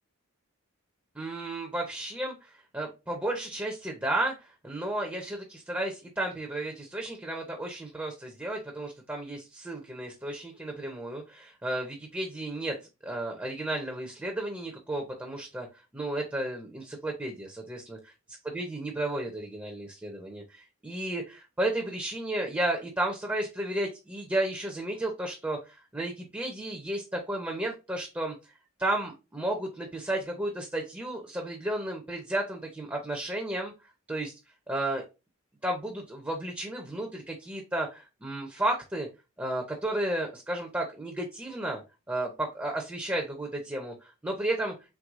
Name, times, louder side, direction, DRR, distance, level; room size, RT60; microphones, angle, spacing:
voice 1, 1.2-12.7 13.0-15.7 15.9-18.0 18.5-28.4 28.8-33.7 34.1-34.3 34.7-35.0 35.6-39.1 39.4-41.8 42.1-44.7, right 1 dB, 10° right, 1 dB, 0.6 m, -33 dB
4.7 x 3.3 x 2.4 m, 0.27 s
head